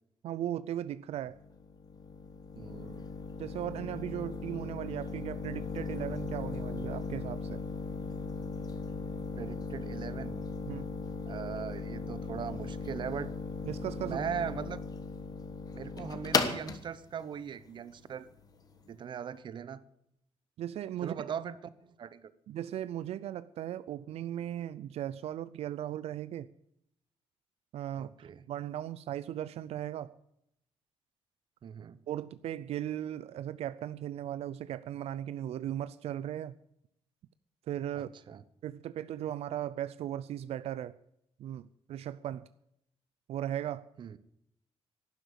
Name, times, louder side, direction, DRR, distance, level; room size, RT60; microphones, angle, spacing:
voice 1, 0.2-1.4 3.4-7.6 10.7-10.9 13.6-14.2 20.6-21.1 22.5-26.5 27.7-30.1 32.1-36.5 37.7-38.2 38.6-41.0 41.4-42.5 43.3-43.9, right 11 dB, 85° right, 0.5 m, -37 dB
sound 1, 1.2-18.9, left 4 dB, 40° left, 1.3 m, -37 dB
voice 2, 2.6-3.1 9.4-10.4 11.3-13.3 14.0-14.8 15.7-18.3 18.9-19.8 21.0-22.3 28.0-28.4 31.6-32.0 38.0-38.4 44.0-44.2, right 8 dB, 50° right, 0.8 m, -40 dB
12.0 x 10.0 x 8.1 m
wide cardioid pair, 165°, 10 cm